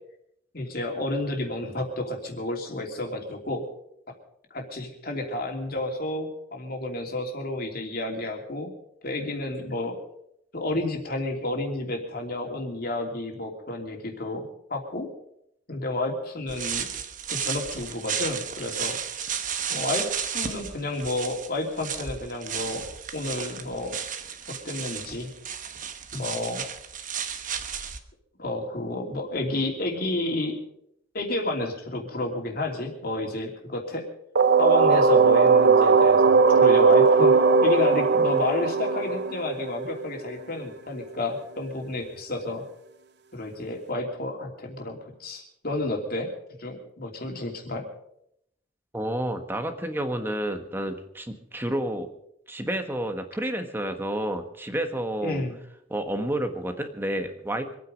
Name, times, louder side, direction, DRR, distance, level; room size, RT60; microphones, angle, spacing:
voice 1, 0.5-3.6 4.5-8.7 9.0-10.0 10.5-15.1 15.7-16.9 17.3-19.0 19.7-22.9 23.1-23.9 24.5-25.3 26.1-26.7 28.4-30.6 31.1-34.1 34.6-42.6 43.3-46.3 46.6-47.9 55.2-55.6, left 2 dB, 55° left, 2 dB, 3.0 m, -31 dB
sound 1, 16.5-28.0, right 8 dB, 45° right, 1.2 m, -33 dB
sound 2, 34.4-40.1, right 4 dB, 60° right, 0.8 m, -18 dB
voice 2, 48.9-52.1 52.5-55.4 55.9-57.7, right 1 dB, 10° right, 6 dB, 1.4 m, -30 dB
25.0 x 9.4 x 5.2 m, 0.74 s
head